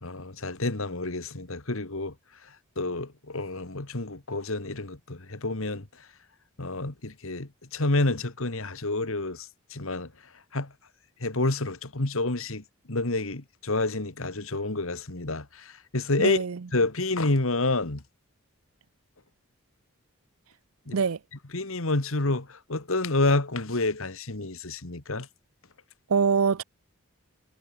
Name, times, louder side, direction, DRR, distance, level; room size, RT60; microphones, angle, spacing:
voice 1, 0.0-2.1 2.8-5.9 6.6-10.1 10.5-10.7 11.2-16.4 16.7-18.0 20.9-21.0 21.5-25.3, left 2 dB, 65° left, 1.9 m, -29 dB
voice 2, 16.2-16.6 20.9-21.2 26.1-26.6, right 5 dB, 70° right, 0.6 m, -24 dB
head